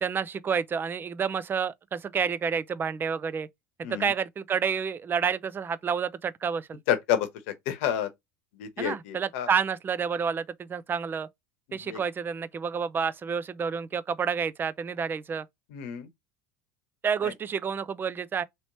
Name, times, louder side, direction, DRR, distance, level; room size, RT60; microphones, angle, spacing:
voice 1, 0.0-3.5 4.0-6.8 8.8-11.3 11.7-15.5 17.0-18.4, right 6 dB, 30° right, 0.4 m, -29 dB
voice 2, 6.9-7.3 7.7-8.1 8.6-9.5 11.9-12.0 15.7-16.1, left 10 dB, 75° left, 0.9 m, -29 dB
3.1 x 3.0 x 2.7 m
hypercardioid pair, 90°, 7 cm